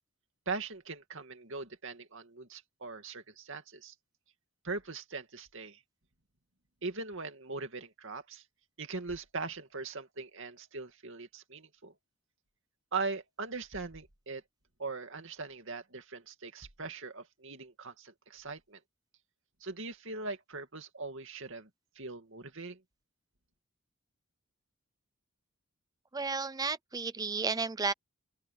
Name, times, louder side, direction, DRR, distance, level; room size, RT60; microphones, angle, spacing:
voice 1, 0.5-3.9 4.6-5.8 6.8-8.4 8.8-11.9 12.9-14.4 14.8-18.8 19.6-21.7 22.0-22.8, right 3 dB, 60° right, 2.5 m, -40 dB
voice 2, 26.1-27.9, right 4 dB, 15° right, 0.5 m, -32 dB
open air
head